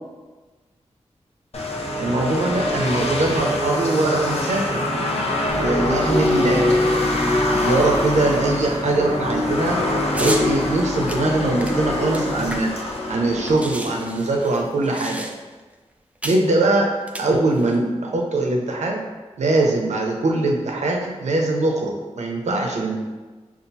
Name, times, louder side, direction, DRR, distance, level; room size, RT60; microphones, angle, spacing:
sound 1, 1.5-14.6, left 1 dB, 60° left, 0.7 m, -24 dB
voice 1, 2.0-4.9 5.6-7.1 7.5-9.8 10.2-12.7 13.1-15.3 16.2-19.1 19.4-23.0, right 2 dB, 75° right, 0 dB, 0.6 m, -22 dB
sound 2, 5.5-12.6, left 1 dB, 10° left, 1.0 m, -30 dB
sound 3, 10.1-10.5 11.1-12.9 13.2-13.3 13.4-15.6 16.2-16.5 17.0-17.8, right 1 dB, 10° right, 0.4 m, -32 dB
5.5 x 2.5 x 2.7 m, 1.3 s
wide cardioid pair, 65°, 12 cm